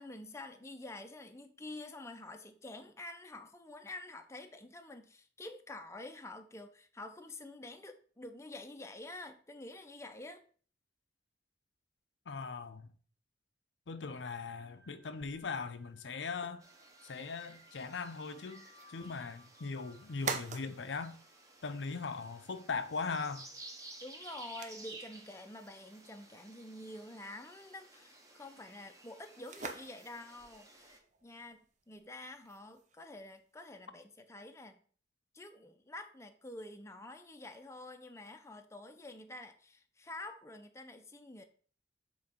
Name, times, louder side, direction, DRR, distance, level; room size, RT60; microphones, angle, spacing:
voice 1, 0.0-10.4 24.0-34.8 35.3-41.4, left 2 dB, 15° left, 0.6 m, -48 dB
voice 2, 12.3-12.9 13.9-16.6 17.0-18.6 18.9-21.2 21.6-23.5, left 4 dB, 90° left, 0.6 m, -39 dB
sound 1, 14.2-23.4, left 1 dB, 80° right, 1.5 m, -65 dB
sound 2, 15.2-33.6, right 5 dB, 40° right, 0.7 m, -49 dB
sound 3, 16.6-31.0, right 2 dB, 20° right, 0.9 m, -55 dB
7.4 x 3.8 x 4.5 m
head